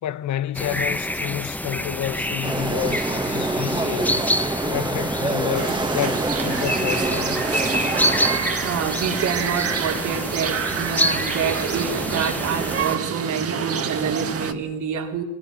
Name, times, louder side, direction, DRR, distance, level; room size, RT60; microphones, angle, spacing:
voice 1, 0.0-4.2 4.6-7.4, left 12 dB, 70° left, 1.0 m, -29 dB
sound 1, 0.5-13.0, left 1 dB, 5° left, 1.1 m, -27 dB
sound 2, 2.4-8.4, right 2 dB, 15° right, 1.5 m, -26 dB
sound 3, 5.5-14.5, right 7 dB, 50° right, 2.0 m, -28 dB
voice 2, 8.2-15.2, right 7 dB, 75° right, 4.1 m, -27 dB
25.0 x 20.5 x 6.4 m
cardioid pair, 90°, 30 cm